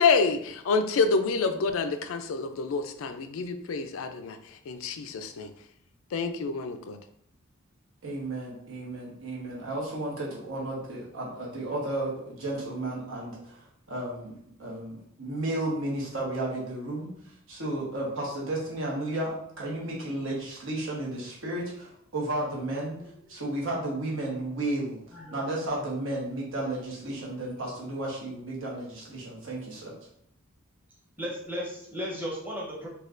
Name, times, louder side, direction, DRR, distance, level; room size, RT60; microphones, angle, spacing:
voice 1, 0.0-4.4 4.7-5.5 6.1-7.0, left 4 dB, 75° left, 8 dB, 0.4 m, -27 dB
voice 2, 8.0-17.1 17.5-23.0 23.3-29.9, right 1 dB, 70° right, -4 dB, 1.1 m, -33 dB
voice 3, 25.1-25.6 31.2-32.9, equal, 10° right, -4 dB, 0.8 m, -35 dB
4.2 x 2.3 x 2.5 m, 0.71 s
head